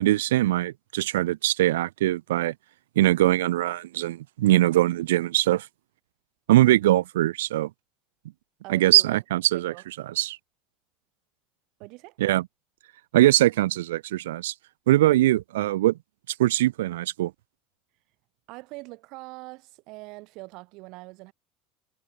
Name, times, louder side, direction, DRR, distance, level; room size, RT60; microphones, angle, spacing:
voice 1, 0.0-2.5 3.0-5.7 6.5-7.7 8.7-9.7 10.1-10.4 12.2-12.5 13.1-14.5 14.9-16.0 16.4-17.3, right 15 dB, 80° right, 0.6 m, -22 dB
voice 2, 8.6-9.2 9.5-9.8 11.8-12.2 18.5-21.3, right 24 dB, 65° right, 5.0 m, -42 dB
hypercardioid pair, 85°, 0 cm